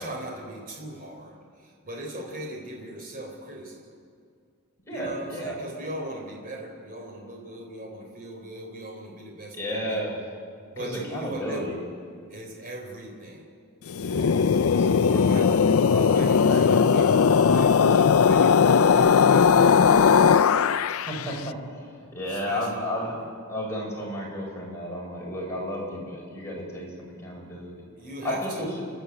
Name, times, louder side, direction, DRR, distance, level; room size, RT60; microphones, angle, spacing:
voice 1, 0.0-3.9 4.9-10.0 10.7-11.7 12.3-13.5 15.1-15.5 15.9-17.2 17.5-19.9 22.3-23.3 28.0-28.7, right 1 dB, 40° right, 0 dB, 4.1 m, -39 dB
voice 2, 4.9-5.6 9.6-10.1 10.8-11.8 14.0-16.8 20.9-23.1 23.5-27.8 28.2-28.8, equal, 15° left, -4 dB, 6.4 m, -33 dB
sound 1, 13.9-21.3, left 6 dB, 75° left, 0.5 m, -19 dB
30.0 x 12.0 x 8.3 m, 2.2 s
head